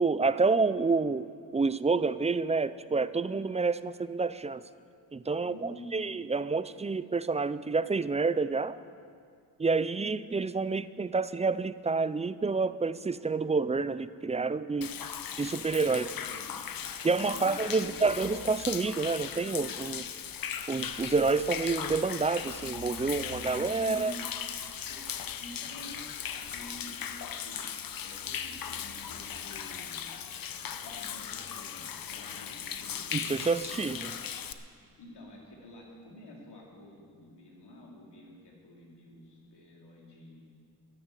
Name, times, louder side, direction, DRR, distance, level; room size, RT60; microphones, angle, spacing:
voice 1, 0.0-4.6 5.1-8.8 9.6-14.9 15.4-16.1 17.0-20.1 20.7-24.1 33.1-34.2, right 4 dB, 20° right, 15 dB, 0.3 m, -28 dB
voice 2, 5.4-6.1 16.0-16.9 17.3-18.1 23.8-24.3 24.9-25.0 25.4-27.6 28.0-30.0 30.6-33.0 35.0-40.4, left 1 dB, 85° left, -2 dB, 3.1 m, -49 dB
Human voice / Rain / Stream, 14.8-34.5, left 8 dB, 60° left, 0.8 m, -38 dB
11.5 x 11.5 x 7.5 m, 2.2 s
cardioid pair, 95°, 39 cm